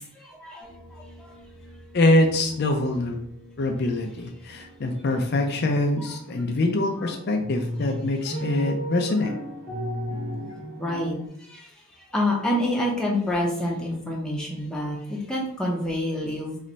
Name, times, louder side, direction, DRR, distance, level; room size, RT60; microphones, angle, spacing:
voice 1, 0.2-0.7 1.2-1.3 6.0-6.1 10.8-11.2 11.5-11.7 12.1-16.6, left 1 dB, 5° left, -3 dB, 0.7 m, -27 dB
sound 1, 0.6-8.1, right 1 dB, 10° right, 1.2 m, -51 dB
voice 2, 1.9-3.2 3.6-9.3, left 2 dB, 50° left, 3 dB, 0.4 m, -24 dB
sound 2, 4.5-4.8 5.0-6.4 6.7-11.3, equal, 80° right, 1.6 m, -34 dB
3.2 x 3.1 x 3.9 m, 0.71 s
head